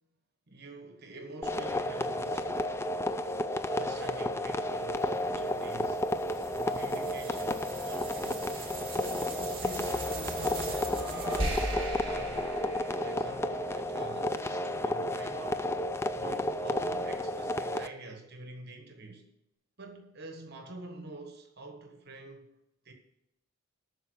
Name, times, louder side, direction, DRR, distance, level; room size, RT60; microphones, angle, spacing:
voice 1, 0.5-2.8 3.7-6.0 6.4-8.6 8.9-12.5 13.0-15.6 16.1-19.2 19.8-22.5 22.8-22.9, right 2 dB, 50° right, 1.4 m, -46 dB
sound 1, 1.4-17.9, left 1 dB, 10° left, 0.4 m, -32 dB
sound 2, 5.0-13.6, right 2 dB, 25° right, 2.0 m, -39 dB
12.5 x 4.7 x 8.0 m
head